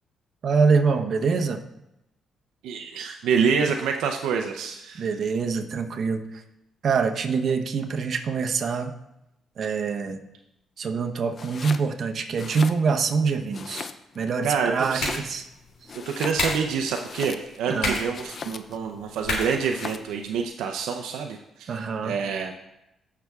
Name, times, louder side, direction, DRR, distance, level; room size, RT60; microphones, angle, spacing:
voice 1, 0.4-1.6 5.0-6.4 6.8-8.9 9.6-10.2 10.8-13.9 14.1-15.4 17.7-18.0 21.7-22.1, right 5 dB, 55° right, 5 dB, 0.8 m, -25 dB
voice 2, 2.6-5.1 14.4-15.2 16.1-22.5, right 6 dB, 85° right, 3 dB, 0.5 m, -27 dB
Domestic sounds home sounds, 11.3-11.9 12.3-13.2 13.5-14.3 14.8-15.5 15.8-17.7 18.1-18.8 19.5-20.1, left 5 dB, 45° left, 0.4 m, -38 dB
sound 1, 14.5-20.5, left 2 dB, 75° left, 2.6 m, -34 dB
16.0 x 5.8 x 2.4 m, 0.87 s
cardioid pair, 90°, 0 cm